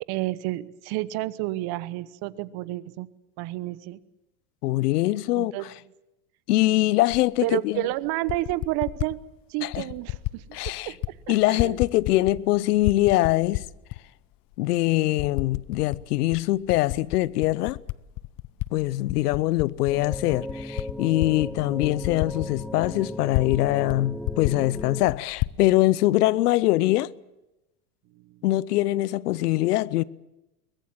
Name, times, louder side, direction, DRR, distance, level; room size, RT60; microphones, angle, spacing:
voice 1, 0.1-3.1 3.4-4.0 5.3-5.7 7.4-9.2 9.5-11.8 28.2-28.4, right 18 dB, 55° right, 1.2 m, -30 dB
voice 2, 4.6-5.5 6.5-7.9 9.6-9.8 10.5-10.9 11.3-13.6 14.6-17.8 18.7-27.1 28.4-30.0, left 17 dB, 80° left, 0.8 m, -23 dB
Typing, 7.1-7.2 8.1-9.1 9.7-10.4 10.6-11.1 11.4-12.5 12.8-14.0 14.5-14.6 15.2-16.0 16.3-18.7 19.0-23.6 23.9-24.0 24.2-25.6, left 20 dB, 45° left, 0.8 m, -31 dB
sound 1, 19.9-25.1, equal, ahead, 0.8 m, -36 dB
23.0 x 20.0 x 7.4 m
hypercardioid pair, 100°, 46 cm